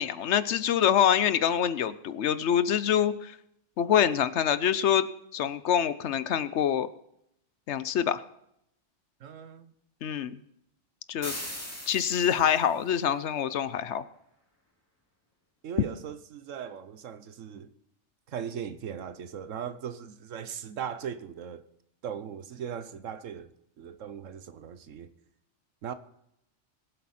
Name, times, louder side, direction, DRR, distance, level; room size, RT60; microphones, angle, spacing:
voice 1, 0.0-3.4 3.8-5.1 5.3-6.9 7.7-8.2 10.0-10.4 11.1-11.4 11.9-14.0, left 9 dB, 70° left, 0.9 m, -25 dB
voice 2, 9.2-9.7 15.6-17.7 18.3-21.6 22.0-23.5 23.8-25.1 25.8-25.9, right 8 dB, 90° right, 1.2 m, -38 dB
sound 1, 11.2-12.8, left 1 dB, 10° left, 2.3 m, -39 dB
21.5 x 7.8 x 4.2 m
omnidirectional pair, 1.3 m